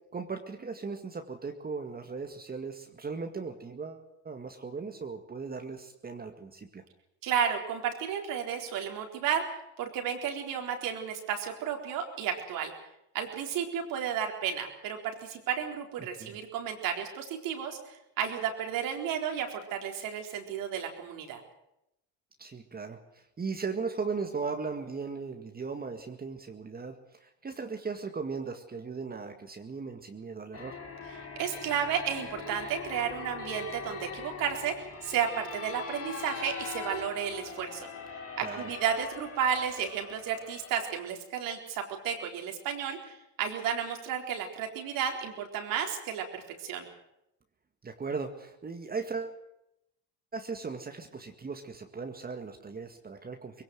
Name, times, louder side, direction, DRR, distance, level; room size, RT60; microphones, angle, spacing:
voice 1, 0.1-6.8 16.0-16.4 22.4-30.8 38.4-38.7 47.8-49.4 50.3-53.6, right 4 dB, 25° right, 5 dB, 2.0 m, -38 dB
voice 2, 7.2-9.4 9.8-12.7 13.1-21.4 31.4-34.7 35.0-37.9 38.4-46.9, right 8 dB, 70° right, 3 dB, 4.1 m, -32 dB
sound 1, 30.5-41.0, left 5 dB, 40° left, 3.3 m, -42 dB
21.5 x 17.5 x 7.9 m, 0.83 s
supercardioid pair, 85°, 34 cm